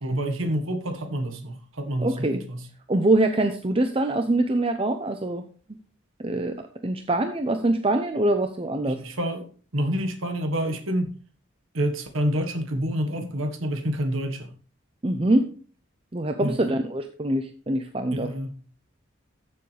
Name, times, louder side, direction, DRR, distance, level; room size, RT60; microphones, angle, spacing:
voice 1, 0.0-2.7 8.9-11.1 11.7-14.5 16.4-16.6 18.1-18.6, equal, 80° right, 1.6 m, -28 dB
voice 2, 2.0-2.4 2.9-5.4 6.2-6.5 6.8-9.0 15.0-15.5 16.1-18.3, right 2 dB, 25° right, 0.6 m, -24 dB
13.5 x 7.0 x 3.4 m
head